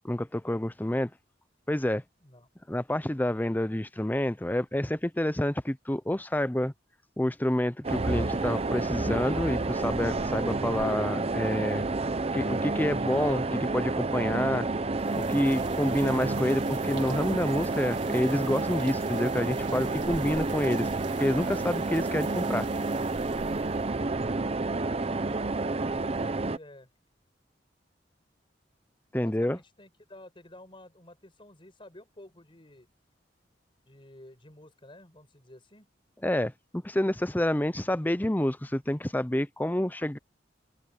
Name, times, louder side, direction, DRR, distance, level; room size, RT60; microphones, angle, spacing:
voice 1, 0.0-1.1 1.7-2.0 2.7-6.7 7.2-11.8 12.3-14.7 15.2-20.9 21.2-22.7 29.1-29.6 36.2-40.2, left 1 dB, 10° left, 0.7 m, -28 dB
voice 2, 2.2-2.5 29.2-32.9 33.9-35.9, left 1 dB, 30° left, 5.8 m, -52 dB
sound 1, 7.8-26.6, right 3 dB, 35° right, 0.7 m, -30 dB
sound 2, 15.0-24.0, right 10 dB, 80° right, 1.8 m, -49 dB
head